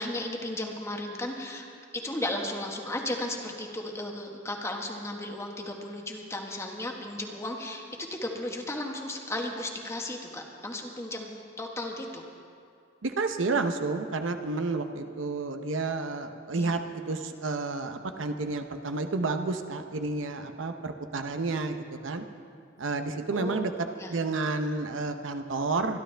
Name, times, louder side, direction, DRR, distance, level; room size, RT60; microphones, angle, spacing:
voice 1, 0.0-1.7 1.9-7.8 8.1-11.3 11.6-12.2 16.5-16.8 23.3-23.7 24.0-24.2, left 1 dB, 15° left, 1 dB, 1.3 m, -35 dB
voice 2, 13.0-22.3 22.8-26.0, right 3 dB, 85° right, 7 dB, 0.8 m, -30 dB
25.0 x 11.5 x 3.4 m, 2.3 s
head